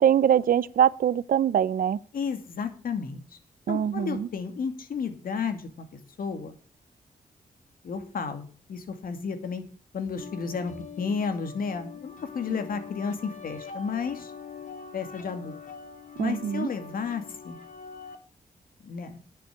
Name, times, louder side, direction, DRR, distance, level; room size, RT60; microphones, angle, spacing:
voice 1, 0.0-2.0 3.7-4.3 12.5-12.6 16.2-16.7, right 9 dB, 70° right, 0.6 m, -23 dB
voice 2, 2.1-3.2 3.7-5.7 6.2-6.5 7.8-9.7 9.9-14.3 14.9-15.6 16.2-17.6 18.8-19.2, left 5 dB, 75° left, 2.3 m, -32 dB
sound 1, 10.2-18.1, left 6 dB, 60° left, 2.1 m, -44 dB
10.5 x 7.1 x 7.8 m
wide cardioid pair, 105°, 15 cm